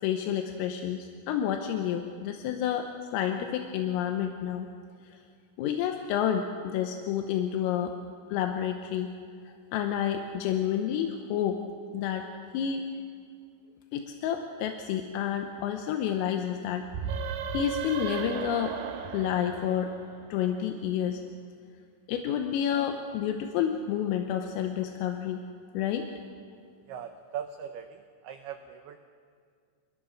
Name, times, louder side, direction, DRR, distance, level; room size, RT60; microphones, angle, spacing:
voice 1, 0.0-4.7 5.1-5.2 5.6-7.9 8.3-9.1 9.5-11.6 11.9-12.3 12.5-12.9 13.9-17.2 17.5-18.7 19.1-20.0 20.3-21.2 22.1-25.4 25.7-26.1, left 9 dB, 85° left, 5 dB, 3.7 m, -29 dB
sound 1, 16.9-20.5, right 7 dB, 70° right, 2.7 m, -35 dB
voice 2, 26.9-29.0, right 8 dB, 85° right, 6 dB, 2.2 m, -40 dB
27.5 x 21.0 x 6.4 m, 2.2 s
omnidirectional pair, 5.8 m